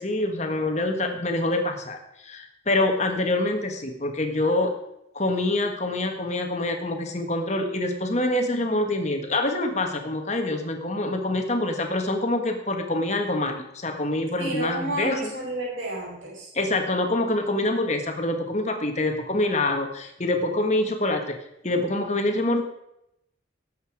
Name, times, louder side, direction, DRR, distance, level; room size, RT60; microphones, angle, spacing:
voice 1, 0.0-4.7 5.1-15.3 16.5-21.3 21.6-22.6, left 2 dB, 35° left, 4 dB, 1.7 m, -25 dB
voice 2, 14.4-16.5, right 1 dB, 90° right, -5 dB, 5.6 m, -31 dB
18.0 x 8.1 x 4.9 m, 0.82 s
head